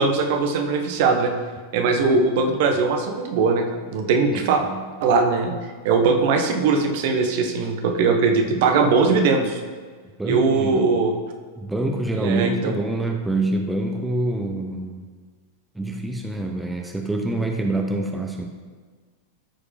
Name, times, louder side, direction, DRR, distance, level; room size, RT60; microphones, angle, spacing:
voice 1, 0.0-1.3 1.7-3.6 3.9-4.6 5.0-5.5 5.8-9.6 10.2-11.1 12.2-12.5, right 4 dB, 50° right, 4 dB, 1.0 m, -20 dB
voice 2, 4.3-4.8 10.2-11.0 11.6-15.0 15.7-18.5, right 2 dB, 5° right, 2 dB, 0.9 m, -26 dB
14.0 x 4.9 x 3.6 m, 1.5 s
figure-of-eight pair, 90°, 0 cm